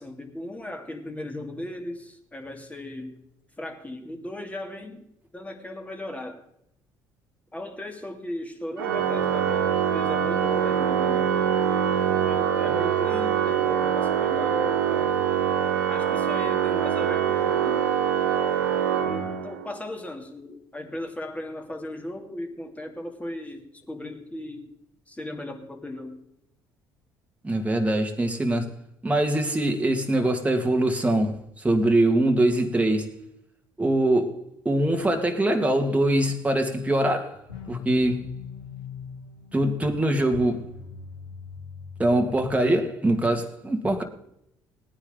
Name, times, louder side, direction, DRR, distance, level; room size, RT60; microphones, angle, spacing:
voice 1, 0.0-3.2 3.6-5.1 5.3-6.4 7.5-11.4 12.2-15.2 15.9-17.8 19.1-24.7 25.1-26.2, left 1 dB, 10° left, 2.6 m, -37 dB
Organ, 8.8-19.7, right 8 dB, 80° right, 1.2 m, -24 dB
voice 2, 27.4-28.7 29.0-33.2 33.8-34.4 34.7-37.4 37.7-38.3 39.5-40.6 42.0-44.0, right 1 dB, 10° right, 2.1 m, -23 dB
sound 1, 37.5-43.1, left 6 dB, 90° left, 2.1 m, -40 dB
19.5 x 9.9 x 3.8 m
figure-of-eight pair, 55°, 11 cm